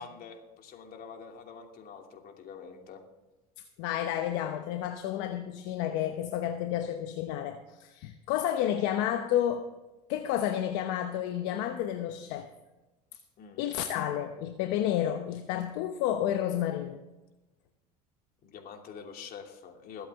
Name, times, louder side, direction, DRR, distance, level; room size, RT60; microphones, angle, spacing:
voice 1, 0.0-3.0 13.4-13.6 18.4-20.1, left 6 dB, 55° left, 2.7 m, -46 dB
voice 2, 3.8-9.7 10.1-12.5 13.6-17.0, left 11 dB, 75° left, 1.0 m, -31 dB
22.0 x 8.4 x 3.6 m
supercardioid pair, 90°, 19 cm